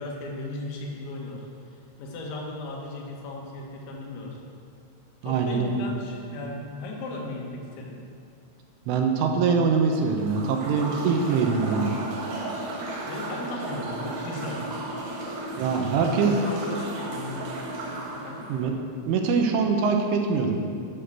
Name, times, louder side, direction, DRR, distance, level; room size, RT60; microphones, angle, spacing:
voice 1, 0.0-4.4 5.2-8.0 13.1-14.6 16.0-17.4 18.1-18.5, left 2 dB, 80° left, -1 dB, 4.6 m, -36 dB
voice 2, 5.2-5.9 8.9-11.9 15.6-16.4 18.5-18.8 19.1-20.6, right 5 dB, 75° right, 3 dB, 3.4 m, -23 dB
sound 1, 10.0-18.7, right 2 dB, 55° right, 2.5 m, -35 dB
11.5 x 9.9 x 8.1 m, 2.4 s
omnidirectional pair, 6.0 m